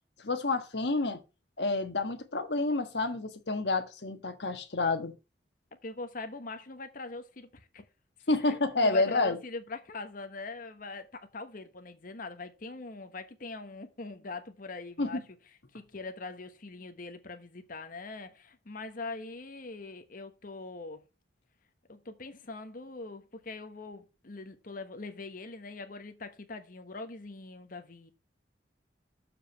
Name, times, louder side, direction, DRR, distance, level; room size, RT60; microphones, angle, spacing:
voice 1, 0.2-1.2 1.6-5.2 8.3-9.4 15.0-15.2, left 3 dB, 65° left, 1.4 m, -29 dB
voice 2, 5.8-7.8 8.4-15.2 15.7-21.0 21.9-28.1, left 3 dB, 50° left, 1.1 m, -42 dB
7.2 x 4.9 x 7.0 m
head